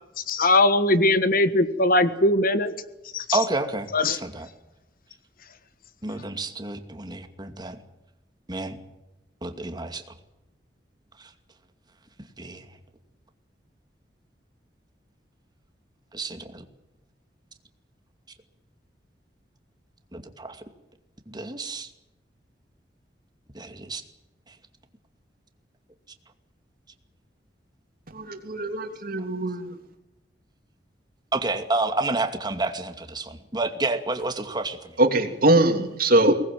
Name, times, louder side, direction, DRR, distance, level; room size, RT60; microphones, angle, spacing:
voice 1, 0.3-2.7 3.1-3.4 3.9-4.2, left 2 dB, 55° left, 12 dB, 1.5 m, -20 dB
voice 2, 3.3-4.5 6.0-7.8 8.5-8.8 9.4-10.0 11.2-11.3 12.4-12.7 16.1-16.6 20.1-20.6 21.3-21.9 23.5-24.0 24.5-24.6 31.3-35.0, right 2 dB, 25° right, 6 dB, 2.5 m, -29 dB
voice 3, 28.1-29.7 35.0-36.3, right 1 dB, 55° right, 5 dB, 3.1 m, -21 dB
23.5 x 20.0 x 7.7 m, 0.97 s
head